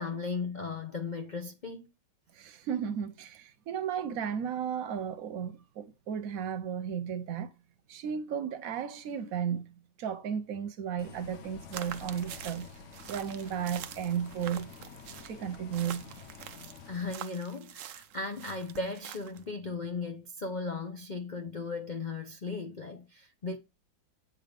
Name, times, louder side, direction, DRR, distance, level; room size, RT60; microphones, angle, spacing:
voice 1, 0.0-1.9 16.9-23.6, left 4 dB, 75° left, 0.4 m, -36 dB
voice 2, 2.4-7.5 7.9-12.7 13.1-14.7 15.2-16.0, right 8 dB, 55° right, 1.1 m, -34 dB
Bus, 11.0-17.1, left 5 dB, 55° left, 0.9 m, -49 dB
sound 1, 11.7-19.5, right 10 dB, 90° right, 0.6 m, -46 dB
8.4 x 3.7 x 5.1 m
omnidirectional pair, 2.1 m